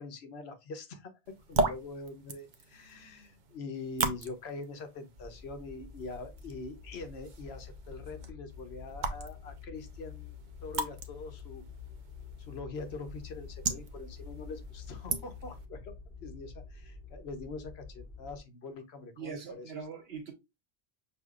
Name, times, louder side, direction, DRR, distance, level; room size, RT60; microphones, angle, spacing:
voice 1, 0.0-10.4 10.6-11.6 12.4-19.6, left 3 dB, 85° left, 1.1 m, -43 dB
sound 1, 1.3-15.7, right 3 dB, 55° right, 0.7 m, -39 dB
sound 2, 5.2-18.4, left 5 dB, 15° right, 1.6 m, -48 dB
voice 2, 19.2-20.3, right 6 dB, 75° right, 1.3 m, -41 dB
6.0 x 2.9 x 2.3 m
omnidirectional pair, 1.0 m